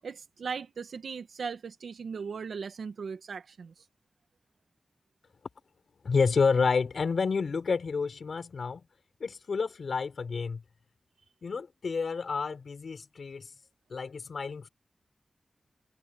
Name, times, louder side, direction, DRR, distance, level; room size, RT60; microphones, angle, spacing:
voice 1, 0.0-3.8, right 5 dB, 85° right, 1.5 m, -38 dB
voice 2, 6.0-8.8 9.2-10.6 11.4-13.5 13.9-14.7, left 5 dB, 70° left, 3.8 m, -29 dB
cardioid pair, 55°, 0 cm